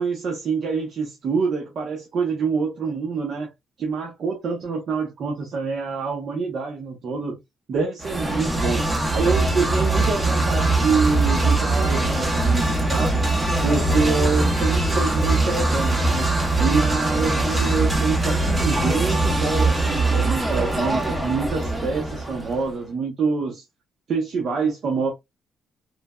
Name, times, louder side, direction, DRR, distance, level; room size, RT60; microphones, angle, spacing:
voice 1, 0.0-3.5 3.8-7.4 7.7-8.8 9.1-13.2 13.6-16.3 16.6-23.6 24.1-25.1, right 4 dB, 60° right, 0.7 m, -26 dB
sound 1, 8.0-22.7, right 2 dB, 20° right, 0.7 m, -22 dB
3.2 x 2.1 x 2.2 m
cardioid pair, 90°, 0 cm